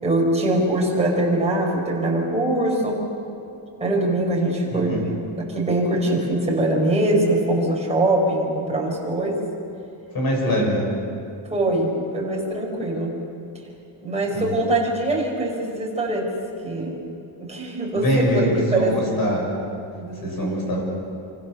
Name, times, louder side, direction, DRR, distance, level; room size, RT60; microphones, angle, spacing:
voice 1, 0.0-3.0 3.8-9.4 10.4-10.6 11.5-13.2 14.0-16.3 16.6-17.0 17.4-19.0 19.9-20.7, right 1 dB, 15° right, -3 dB, 5.7 m, -23 dB
voice 2, 4.7-5.0 10.1-10.9 14.3-14.6 17.9-19.5 20.2-20.8, equal, 45° left, 0 dB, 7.5 m, -23 dB
27.0 x 26.0 x 6.9 m, 2.5 s
wide cardioid pair, 175°, 50 cm